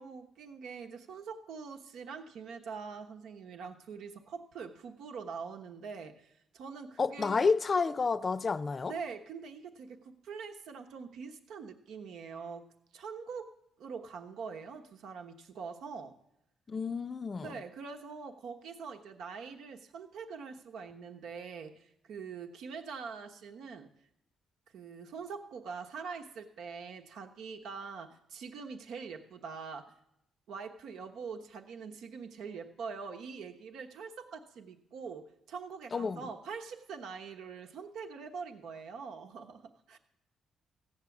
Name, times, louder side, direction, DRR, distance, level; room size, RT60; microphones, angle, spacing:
voice 1, 0.0-7.5 8.9-12.7 12.9-16.1 17.4-23.9 24.7-29.9 30.5-40.0, right 5 dB, 75° right, 1.2 m, -44 dB
voice 2, 7.0-8.9 16.7-17.5 35.9-36.2, left 4 dB, 35° left, 0.5 m, -30 dB
15.5 x 8.2 x 7.2 m
cardioid pair, 90°, 0 cm